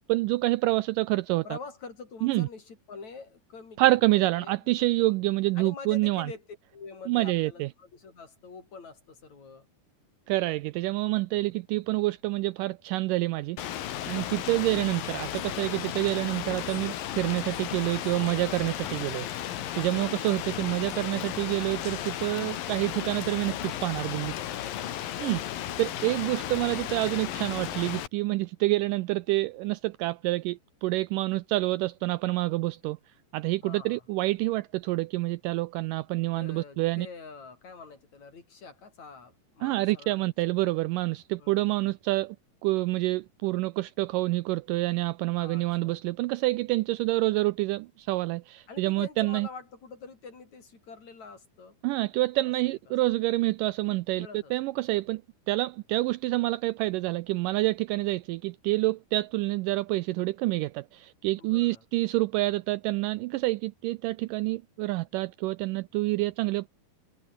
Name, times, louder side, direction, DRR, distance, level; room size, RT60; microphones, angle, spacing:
voice 1, 0.1-1.6 2.2-2.5 3.8-6.3 7.1-7.7 10.3-13.6 14.1-19.3 19.7-24.3 25.2-25.4 25.8-33.0 33.3-37.1 39.6-42.4 42.6-49.5 51.8-55.2 55.5-66.7, right 19 dB, 80° right, 2.0 m, -27 dB
voice 2, 1.4-4.7 5.0-5.3 5.6-6.4 6.7-9.7 11.3-11.5 25.1-25.6 33.6-34.1 36.4-40.5 41.4-41.7 45.4-46.0 48.7-51.8 52.4-52.9 54.2-54.6 61.4-61.8, left 4 dB, 50° left, 5.8 m, -46 dB
Rain, 13.6-28.1, left 11 dB, 75° left, 3.3 m, -35 dB
omnidirectional pair, 4.2 m